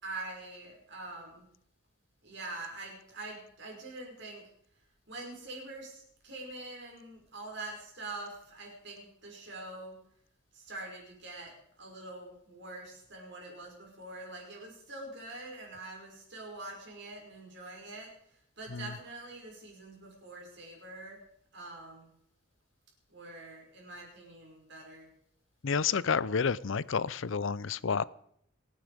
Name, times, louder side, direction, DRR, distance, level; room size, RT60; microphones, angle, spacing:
voice 1, 0.0-1.4 2.2-4.4 5.1-10.0 10.5-11.5 11.8-18.1 18.6-21.2 21.5-22.1 23.1-25.1, right 2 dB, 55° right, 0 dB, 6.0 m, -44 dB
voice 2, 25.6-28.0, left 6 dB, 65° left, 20 dB, 0.5 m, -30 dB
27.0 x 9.7 x 5.1 m, 0.71 s
head